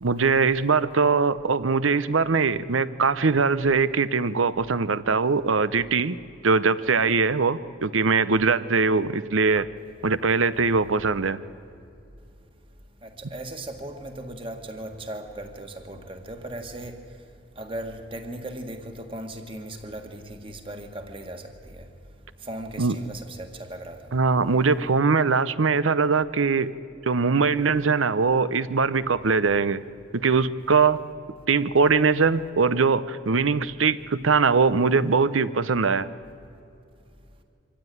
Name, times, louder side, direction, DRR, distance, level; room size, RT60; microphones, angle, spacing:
voice 1, 0.0-6.2 6.4-9.7 10.0-11.4 22.8-22.9 24.1-26.7 27.1-29.8 30.1-31.0 31.5-36.1, right 4 dB, 85° right, 0.8 m, -22 dB
voice 2, 13.0-17.0 17.6-21.9 22.4-24.0, right 1 dB, 25° right, 1.8 m, -37 dB
24.5 x 15.5 x 9.4 m
head